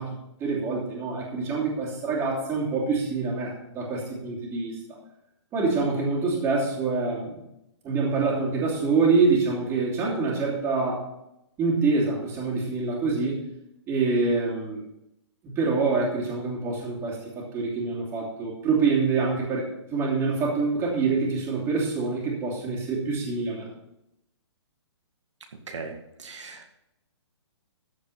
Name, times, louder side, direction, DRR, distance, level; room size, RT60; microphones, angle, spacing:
voice 1, 0.0-4.8 5.5-7.4 7.8-11.1 11.6-13.4 13.9-14.8 15.4-23.7, right 4 dB, 15° right, -4 dB, 2.9 m, -26 dB
voice 2, 25.7-26.7, right 4 dB, 90° right, 3 dB, 2.0 m, -39 dB
13.5 x 5.2 x 5.8 m, 0.85 s
hypercardioid pair, 155°, 15 cm